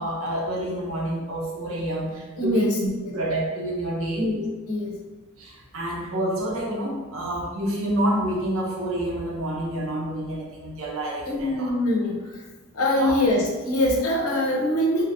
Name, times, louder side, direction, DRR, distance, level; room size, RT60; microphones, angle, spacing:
voice 1, 0.0-4.3 5.4-11.7 13.0-13.1, right 1 dB, 65° right, -2 dB, 0.8 m, -28 dB
voice 2, 2.4-3.1 4.2-4.4 4.7-5.0 11.2-12.4 12.7-15.0, left 1 dB, 75° left, -1 dB, 0.8 m, -23 dB
4.0 x 2.7 x 2.6 m, 1.2 s
head